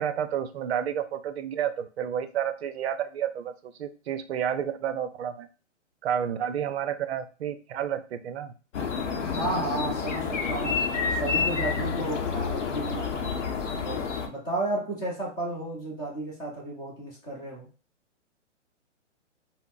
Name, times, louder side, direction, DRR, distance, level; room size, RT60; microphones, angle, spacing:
voice 1, 0.0-5.5 6.0-8.5, right 9 dB, 60° right, 11 dB, 0.5 m, -30 dB
sound 1, 8.7-14.3, left 5 dB, 70° left, 0.7 m, -29 dB
voice 2, 9.3-10.8 11.2-13.1 13.8-17.7, right 2 dB, 10° left, -4 dB, 0.6 m, -33 dB
3.9 x 2.0 x 2.4 m, 0.34 s
hypercardioid pair, 150°, 37 cm